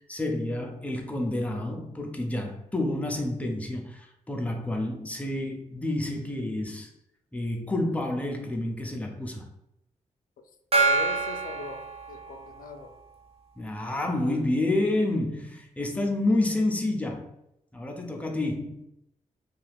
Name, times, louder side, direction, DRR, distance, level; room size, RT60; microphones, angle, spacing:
voice 1, 0.1-6.9 7.3-9.5 13.6-17.3 17.7-18.9, left 1 dB, 10° left, 0.6 m, -29 dB
voice 2, 10.7-11.8 12.1-12.9, left 3 dB, 85° left, 0.4 m, -39 dB
Gong, 10.7-12.7, right 3 dB, 45° right, 0.7 m, -26 dB
2.8 x 2.3 x 3.3 m
wide cardioid pair, 90°, 14 cm